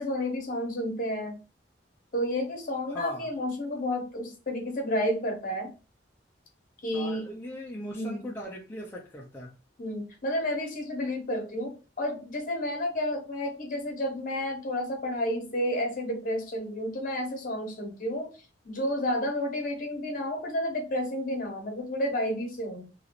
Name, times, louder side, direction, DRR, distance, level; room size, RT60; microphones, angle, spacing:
voice 1, 0.0-1.4 2.1-5.7 6.8-7.2 7.9-8.3 9.8-22.8, left 1 dB, 50° left, 1.1 m, -31 dB
voice 2, 2.9-3.3 6.9-9.5, left 1 dB, 15° left, 0.5 m, -39 dB
2.9 x 2.9 x 4.1 m
head